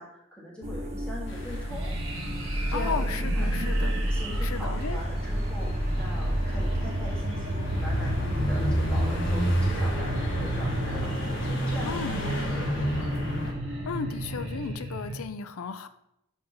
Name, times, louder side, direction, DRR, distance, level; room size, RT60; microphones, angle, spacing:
voice 1, 0.0-1.9 2.7-3.5 4.1-13.1, equal, 5° left, -5 dB, 1.6 m, -41 dB
sound 1, 0.6-14.7, equal, 30° right, 0.9 m, -32 dB
sound 2, 1.3-13.5, equal, 60° left, 1.1 m, -32 dB
sound 3, 1.7-15.2, right 1 dB, 70° right, 1.2 m, -34 dB
voice 2, 2.7-4.0 4.4-5.0 11.8-12.1 13.6-15.9, left 6 dB, 90° left, 12 dB, 0.5 m, -35 dB
5.4 x 3.6 x 5.7 m, 0.82 s
head